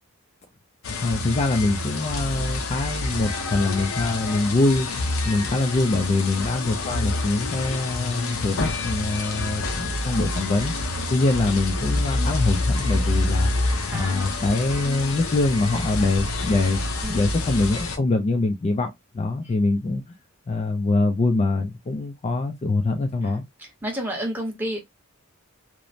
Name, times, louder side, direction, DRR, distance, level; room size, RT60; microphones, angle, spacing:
sound 1, 0.8-18.0, left 2 dB, 75° left, 0.6 m, -27 dB
voice 1, 1.0-10.7 11.1-13.5 13.9-16.8 17.1-20.0 20.5-23.4, left 2 dB, 30° left, 0.3 m, -24 dB
voice 2, 23.2-24.8, right 1 dB, 10° right, 0.8 m, -31 dB
3.0 x 2.0 x 2.5 m
head